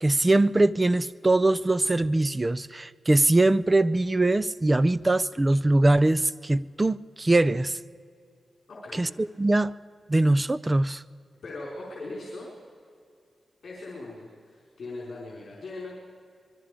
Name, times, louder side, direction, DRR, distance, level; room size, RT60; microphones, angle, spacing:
voice 1, 0.0-7.7 9.0-9.1 9.4-9.7 10.1-11.0, right 2 dB, 20° right, 0.4 m, -22 dB
voice 2, 8.7-9.1 11.4-12.5 13.6-15.9, left 2 dB, 55° left, 4.5 m, -39 dB
24.5 x 22.5 x 5.0 m
wide cardioid pair, 160°, 0 cm